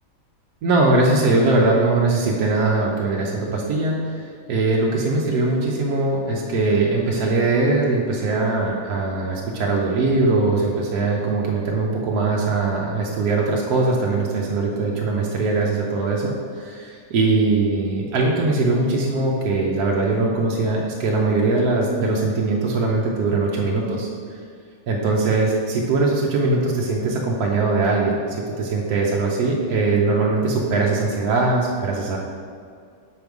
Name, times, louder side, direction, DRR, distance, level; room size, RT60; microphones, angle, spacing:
voice 1, 0.6-24.1 24.9-32.2, right 3 dB, 70° right, -2 dB, 1.2 m, -21 dB
6.3 x 5.2 x 4.7 m, 2.2 s
omnidirectional pair, 1.7 m